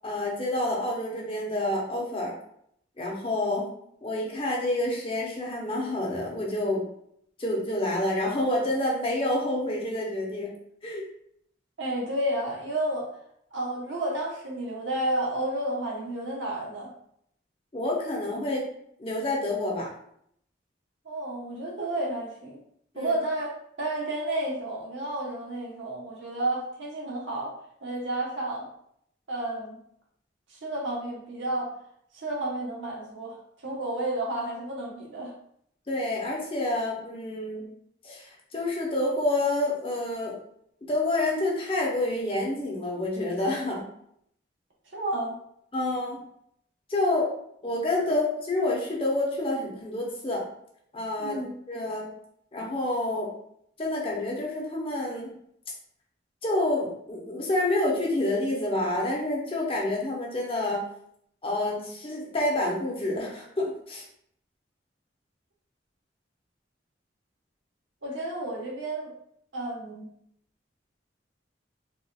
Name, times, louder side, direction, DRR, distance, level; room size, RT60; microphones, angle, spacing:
voice 1, 0.0-2.3 3.0-3.7 4.0-6.8 7.4-10.5 10.8-11.0 17.7-18.7 19.0-19.9 22.9-23.1 35.9-37.7 38.0-40.4 40.8-43.8 45.7-46.2 46.9-47.3 47.6-50.4 50.9-51.4 51.7-52.1 52.5-53.3 53.8-55.3 56.4-60.8 61.4-64.0, left 1 dB, 30° left, -2 dB, 0.8 m, -28 dB
voice 2, 11.8-13.1 13.5-16.9 21.0-22.6 22.9-23.5 23.8-27.5 27.8-28.7 29.3-29.8 30.5-31.7 32.1-35.3 44.9-45.4 48.1-48.2 51.2-51.5 68.0-69.1 69.5-70.1, right 1 dB, 90° right, -3 dB, 1.0 m, -31 dB
4.1 x 2.4 x 2.3 m, 0.70 s
head